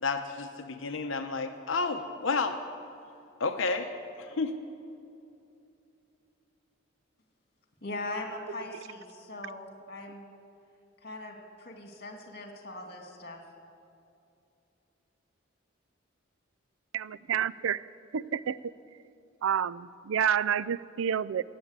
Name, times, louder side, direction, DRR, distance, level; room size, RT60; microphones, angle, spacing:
voice 1, 0.0-2.6 3.4-4.5, left 4 dB, 75° left, 7 dB, 0.8 m, -31 dB
voice 2, 7.8-10.3 11.0-13.4, left 2 dB, 50° left, 3 dB, 2.2 m, -40 dB
voice 3, 16.9-17.9 18.1-18.7 19.4-21.4, right 8 dB, 85° right, 19 dB, 0.4 m, -29 dB
18.5 x 8.7 x 8.1 m, 2.7 s
head